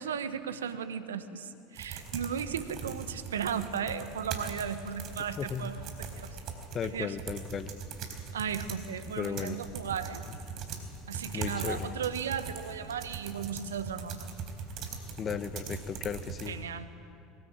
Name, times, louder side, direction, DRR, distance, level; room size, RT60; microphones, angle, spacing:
voice 1, 0.0-6.4 6.9-7.2 8.3-10.2 11.1-14.3 16.5-16.9, right 7 dB, 80° right, 11 dB, 1.2 m, -36 dB
sound 1, 1.8-16.5, right 5 dB, 50° right, 4.2 m, -41 dB
voice 2, 5.4-5.7 6.7-7.7 9.2-9.6 11.3-11.9 15.2-16.6, left 7 dB, 35° left, 12 dB, 1.3 m, -35 dB
23.5 x 21.0 x 8.9 m, 2.5 s
hypercardioid pair, 70°, 0 cm